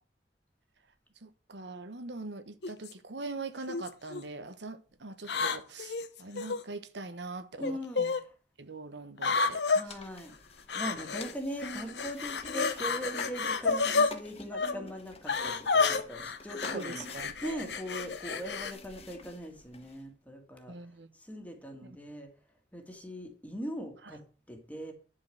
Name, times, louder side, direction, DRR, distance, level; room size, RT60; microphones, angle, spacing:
voice 1, 1.2-8.2 8.6-10.0 16.7-17.7 20.7-21.1, right 3 dB, 75° right, 1.1 m, -42 dB
sound 1, 2.6-2.9 3.7-4.2 5.2-6.6 7.6-8.2 9.2-9.8 10.7-11.3 11.6-14.1 14.5-14.7 15.3-18.7, left 4 dB, 75° left, 1.1 m, -30 dB
voice 2, 7.6-8.3 9.7-10.3 10.7-17.0 17.4-20.7 21.1-22.3 22.7-24.9, equal, 10° left, 2.0 m, -40 dB
sound 2, 9.9-20.0, left 2 dB, 35° left, 1.5 m, -48 dB
11.5 x 4.7 x 7.7 m
head